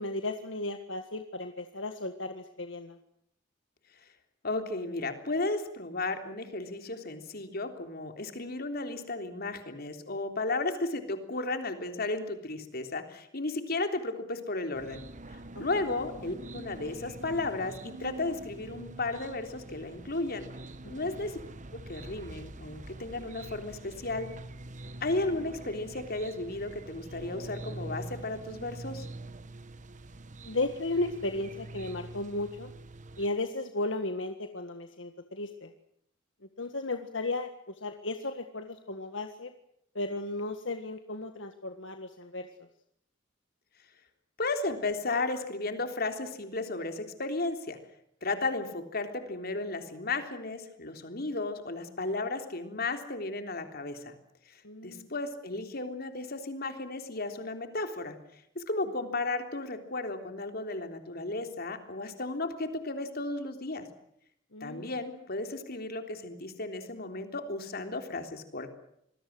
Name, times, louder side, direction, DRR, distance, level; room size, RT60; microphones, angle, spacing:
voice 1, 0.0-3.0 15.6-15.8 20.8-20.9 30.4-32.7 33.2-35.7 36.6-37.5 37.8-39.5 40.0-42.5 54.6-55.1 64.5-64.9, left 2 dB, 75° left, 7 dB, 1.7 m, -35 dB
voice 2, 4.4-15.0 15.6-20.5 20.9-21.4 21.9-24.3 25.0-29.1 44.4-47.8 48.2-54.1 54.5-58.2 58.6-63.9 64.6-68.7, left 2 dB, 55° left, 6 dB, 3.5 m, -34 dB
sound 1, 14.7-33.3, right 2 dB, 40° right, 1.2 m, -45 dB
27.0 x 20.5 x 7.8 m, 0.74 s
head